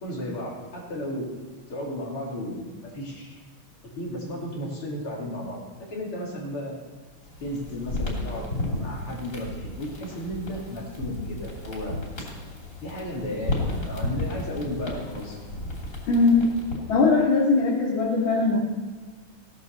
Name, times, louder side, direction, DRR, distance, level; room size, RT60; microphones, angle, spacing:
voice 1, 0.0-1.3 1.7-3.4 4.0-6.8 7.4-12.0 12.8-15.4, left 1 dB, 85° left, -2 dB, 3.9 m, -34 dB
sound 1, 7.2-17.0, left 1 dB, 40° left, 3.7 m, -33 dB
voice 2, 16.1-16.4 16.9-18.6, left 3 dB, 65° left, -4 dB, 2.9 m, -20 dB
16.0 x 9.4 x 6.6 m, 1.3 s
omnidirectional pair, 2.3 m